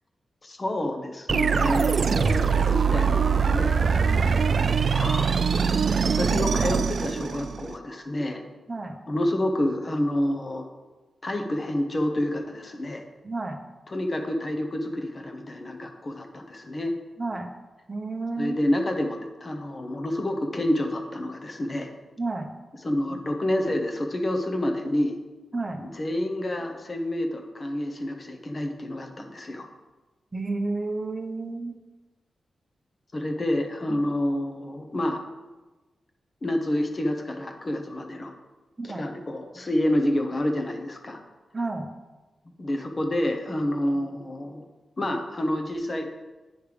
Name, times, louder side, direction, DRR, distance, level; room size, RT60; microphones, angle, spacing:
voice 1, 0.4-3.8 4.9-5.3 6.0-8.4 9.1-10.7 11.2-13.0 13.9-16.9 18.4-21.9 22.8-25.2 25.8-29.7 33.1-35.2 36.4-38.3 38.8-41.2 42.6-44.6 45.0-46.1, left 1 dB, 35° left, 4 dB, 0.9 m, -28 dB
sound 1, 1.3-7.7, right 6 dB, 55° right, 0.3 m, -23 dB
voice 2, 4.0-4.4 8.7-9.0 13.2-13.6 17.2-17.5 17.9-18.6 22.2-22.5 25.5-25.8 30.3-31.7 33.9-34.0 38.8-39.0 41.5-41.9, right 3 dB, 20° right, 4 dB, 0.8 m, -31 dB
9.8 x 3.3 x 5.0 m, 1.2 s
wide cardioid pair, 115°, 0 cm